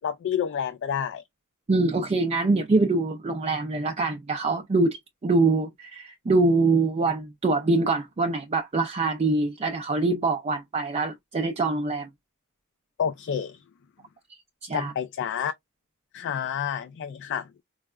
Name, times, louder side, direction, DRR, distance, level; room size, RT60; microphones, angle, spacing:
voice 1, 0.0-1.2 13.0-13.6 14.7-15.5 16.1-17.5, left 8 dB, 55° left, 0.3 m, -29 dB
voice 2, 1.7-12.1 14.6-14.9, right 3 dB, 30° right, 0.4 m, -24 dB
4.6 x 2.1 x 2.2 m
head